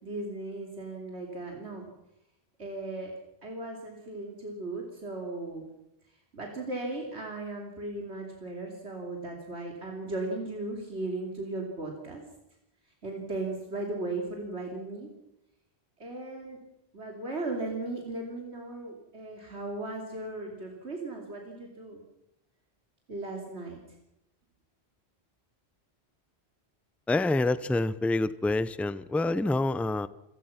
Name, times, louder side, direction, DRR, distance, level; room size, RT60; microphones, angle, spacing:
voice 1, 0.0-1.9 2.6-3.1 3.4-5.6 6.3-12.2 13.0-15.1 16.0-16.6 16.9-22.0 23.1-23.8, right 2 dB, 85° right, 1 dB, 3.4 m, -37 dB
voice 2, 27.1-30.1, left 2 dB, ahead, 16 dB, 0.5 m, -27 dB
28.0 x 17.0 x 5.9 m, 0.82 s
omnidirectional pair, 1.1 m